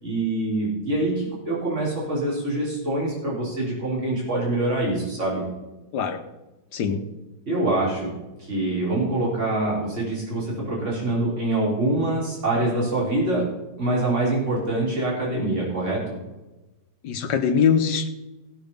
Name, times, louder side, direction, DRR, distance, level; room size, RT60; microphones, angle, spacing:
voice 1, 0.0-5.4 7.5-8.1 8.4-13.5 13.8-16.2, right 2 dB, 40° right, -5 dB, 4.1 m, -25 dB
voice 2, 6.7-7.0 17.0-18.1, left 7 dB, 70° left, 7 dB, 1.6 m, -22 dB
16.5 x 6.3 x 5.2 m, 1.1 s
omnidirectional pair, 1.9 m